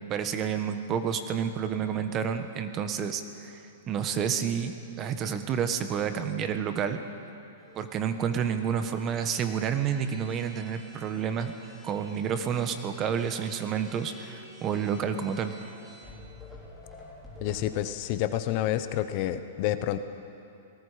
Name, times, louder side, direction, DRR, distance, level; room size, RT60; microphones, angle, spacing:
voice 1, 0.0-3.6 3.9-7.0 7.8-11.5 11.8-15.5, right 7 dB, 25° right, 8 dB, 1.2 m, -29 dB
sound 1, 7.6-17.7, left 1 dB, 5° right, 5.1 m, -50 dB
voice 2, 17.4-20.0, left 12 dB, 40° left, 10 dB, 0.9 m, -29 dB
27.5 x 19.0 x 5.1 m, 2.7 s
hypercardioid pair, 150°, 0 cm